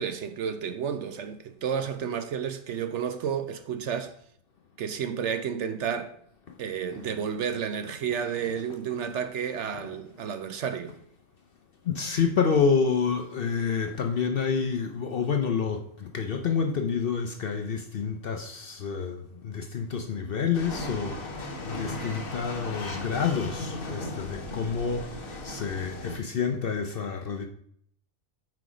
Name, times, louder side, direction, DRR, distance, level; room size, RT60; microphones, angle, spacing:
voice 1, 0.0-4.1 4.8-6.1 6.6-11.0, right 7 dB, 65° right, 0.8 m, -31 dB
voice 2, 6.9-7.2 8.1-9.0 9.4-10.0 11.8-25.1 25.4-27.5, left 6 dB, 55° left, 0.7 m, -29 dB
sound 1, 20.5-26.2, left 2 dB, 75° left, 1.7 m, -36 dB
6.1 x 4.8 x 4.9 m
omnidirectional pair, 1.4 m